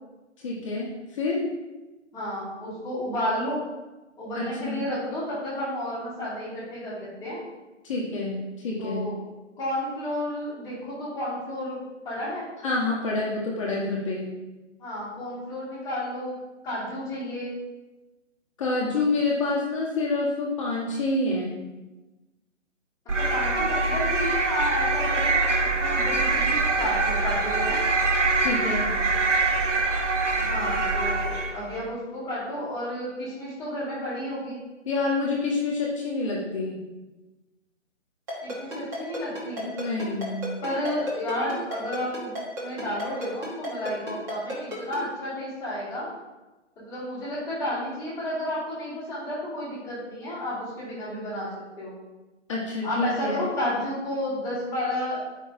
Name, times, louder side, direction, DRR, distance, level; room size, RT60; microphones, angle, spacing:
voice 1, 0.4-1.5 4.3-4.8 7.8-9.1 12.6-14.3 18.6-21.6 28.4-28.9 34.8-36.8 39.7-40.5 52.5-53.4, left 3 dB, 25° left, -4 dB, 1.2 m, -27 dB
voice 2, 2.1-3.7 4.2-7.4 8.8-9.2 9.6-11.8 12.0-12.5 14.8-16.4 16.6-17.6 23.2-27.8 30.4-34.6 38.4-39.7 40.6-42.3 42.6-46.1 46.8-51.5 51.8-51.9 52.8-55.2, left 1 dB, 10° left, -10 dB, 2.2 m, -31 dB
sound 1, 23.1-31.7, right 3 dB, 75° right, 1.1 m, -24 dB
Ringtone, 38.3-45.0, equal, 10° right, 0.9 m, -33 dB
8.5 x 5.4 x 2.6 m, 1.1 s
hypercardioid pair, 155°, 36 cm